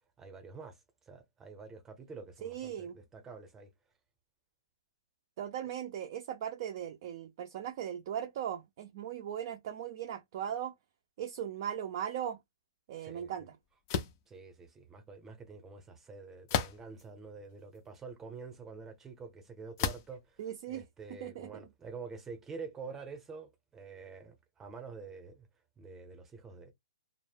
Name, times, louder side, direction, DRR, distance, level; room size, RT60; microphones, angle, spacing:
voice 1, 0.2-3.7 13.0-13.5 14.3-25.5 25.8-26.7, right 4 dB, 10° right, 0.7 m, -47 dB
voice 2, 2.4-2.9 5.4-10.7 11.2-12.4 12.9-13.5 20.4-20.8 21.2-21.5, right 9 dB, 45° right, 0.4 m, -38 dB
sound 1, 13.9-14.2 16.5-17.0 17.8-17.9 19.8-20.2, left 8 dB, 35° left, 0.4 m, -33 dB
2.1 x 2.0 x 3.4 m
hypercardioid pair, 150°, 3 cm